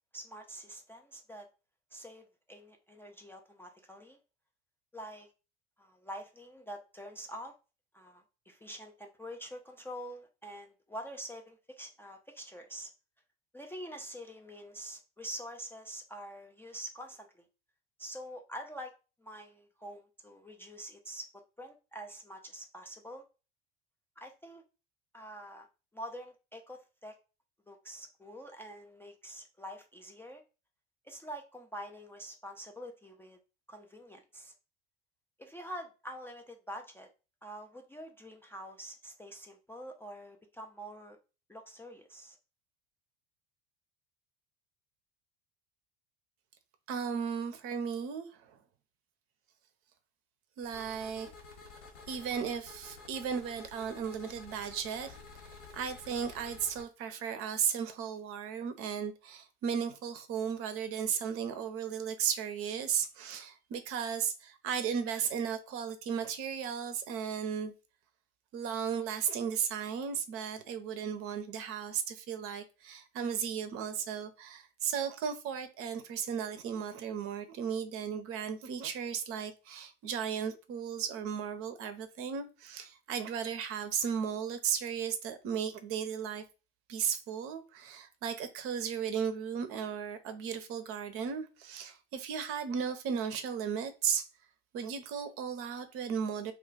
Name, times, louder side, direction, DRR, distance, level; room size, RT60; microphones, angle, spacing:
voice 1, 0.1-1.5 1.9-4.2 4.9-5.3 5.8-7.5 7.9-12.9 13.5-17.5 18.0-18.9 19.2-21.3 21.6-23.2 24.2-24.6 25.1-25.7 25.9-27.2 27.7-30.4 31.0-33.4 33.7-34.5 35.4-37.1 37.4-41.2 41.5-42.4, equal, 10° left, 0.3 m, -46 dB
voice 2, 46.9-48.6 50.6-51.3 52.1-55.2 55.7-67.7 68.5-86.4 86.9-94.3 94.7-96.5, right 7 dB, 50° right, 0.6 m, -35 dB
sound 1, 50.6-56.8, left 4 dB, 75° left, 1.2 m, -51 dB
2.3 x 2.2 x 3.8 m
hypercardioid pair, 70°, 30 cm